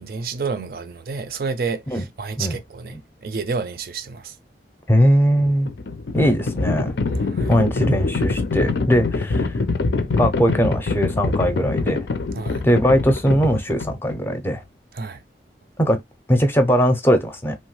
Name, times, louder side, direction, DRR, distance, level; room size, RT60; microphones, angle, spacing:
voice 1, 0.0-4.4 7.1-7.5 12.3-12.6 14.9-15.2, right 4 dB, 55° right, 0.4 m, -30 dB
voice 2, 4.9-5.7 6.1-6.9 7.5-9.5 10.2-12.1 12.6-14.6 15.8-16.0 16.3-17.6, equal, 15° left, 0.5 m, -19 dB
Livestock farm animals working animals, 5.3-14.3, left 3 dB, 90° left, 0.6 m, -24 dB
3.0 x 2.2 x 3.0 m
head